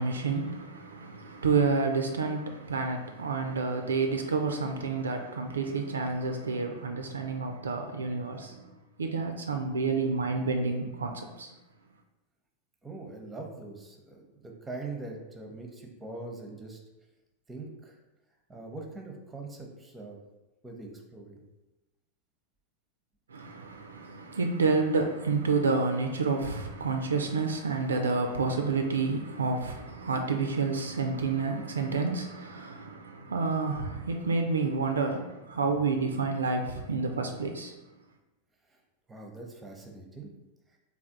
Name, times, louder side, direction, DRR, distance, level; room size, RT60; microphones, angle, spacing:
voice 1, 0.0-8.7 9.0-11.5 23.3-37.7, right 4 dB, 70° right, 0.3 m, -29 dB
voice 2, 12.8-16.8 17.5-18.0 18.5-20.2 20.6-21.4 39.1-40.3, right 3 dB, 10° right, 0.6 m, -42 dB
3.3 x 2.3 x 3.8 m
figure-of-eight pair, 90°, 0 cm